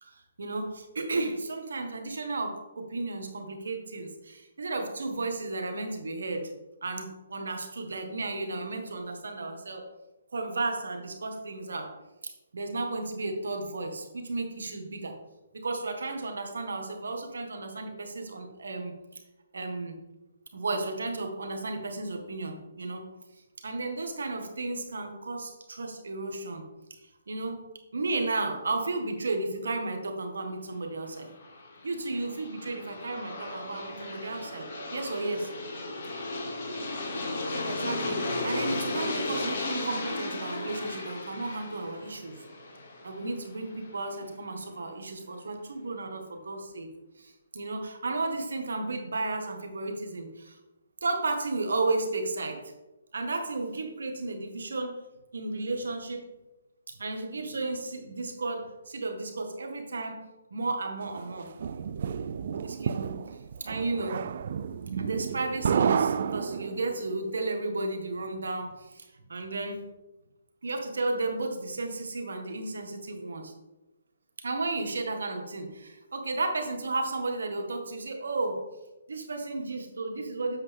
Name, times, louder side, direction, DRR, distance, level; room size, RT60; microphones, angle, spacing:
voice 1, 0.0-6.5 6.8-9.9 10.3-11.9 12.2-15.1 15.5-18.9 19.5-19.9 20.5-23.1 23.6-26.6 26.9-27.0 27.3-27.7 27.9-31.3 31.8-35.5 37.6-42.4 43.0-46.9 47.2-50.6 51.0-52.6 53.1-55.0 55.3-56.2 56.9-61.5 62.6-63.2 63.6-64.2 64.9-69.8 70.6-73.5 74.4-78.6 79.1-80.6, right 2 dB, 80° right, 4 dB, 1.7 m, -33 dB
Aircraft, 31.2-44.0, left 2 dB, 45° left, 2.1 m, -35 dB
sound 1, 61.2-67.0, right 7 dB, 55° right, 0.3 m, -30 dB
8.1 x 6.1 x 3.6 m, 1.0 s
hypercardioid pair, 155°, 0 cm